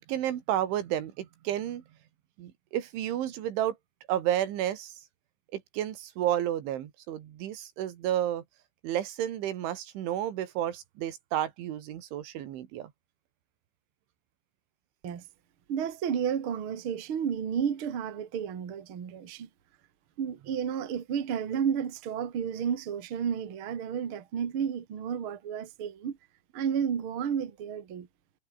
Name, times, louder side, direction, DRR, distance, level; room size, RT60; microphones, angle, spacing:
voice 1, 0.0-1.8 2.4-3.8 4.1-4.9 5.5-8.4 8.8-12.9, right 11 dB, 85° right, 4.5 m, -31 dB
voice 2, 15.7-19.5 20.2-26.2 26.5-28.1, right 8 dB, 40° right, 2.0 m, -32 dB
omnidirectional pair, 5.4 m